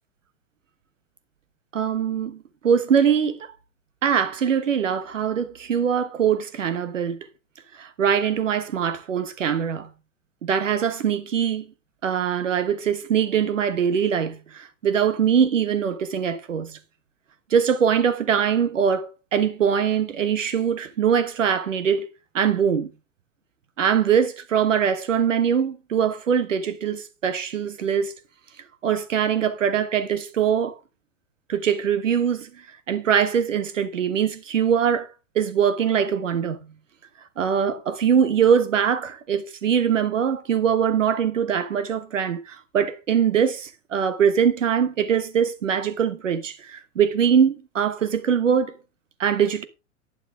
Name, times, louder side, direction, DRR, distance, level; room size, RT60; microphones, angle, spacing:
voice 1, 1.7-2.4 2.6-3.5 4.0-7.2 7.8-9.9 10.4-11.6 12.0-16.8 17.5-22.1 22.3-22.9 23.8-28.1 28.8-30.7 31.5-32.5 32.9-35.1 35.3-36.6 37.4-48.7 49.2-49.6, right 8 dB, 80° right, 1.3 m, -22 dB
11.0 x 9.0 x 3.5 m
hypercardioid pair, 100°, 37 cm